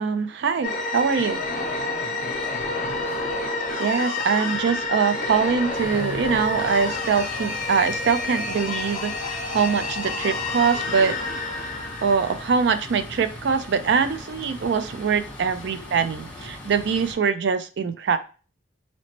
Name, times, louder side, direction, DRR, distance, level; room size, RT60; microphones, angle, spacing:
voice 1, 0.0-1.4 3.8-11.2 11.5-11.7 12.0-18.2, right 6 dB, 60° right, 0.3 m, -23 dB
sound 1, 0.6-13.1, left 2 dB, 40° left, 0.8 m, -29 dB
voice 2, 1.8-3.2 14.4-14.6 15.5-15.9 16.4-16.6, left 3 dB, 80° left, 0.4 m, -45 dB
sound 2, 5.7-17.1, left 1 dB, 5° left, 0.8 m, -40 dB
4.2 x 2.8 x 2.9 m
head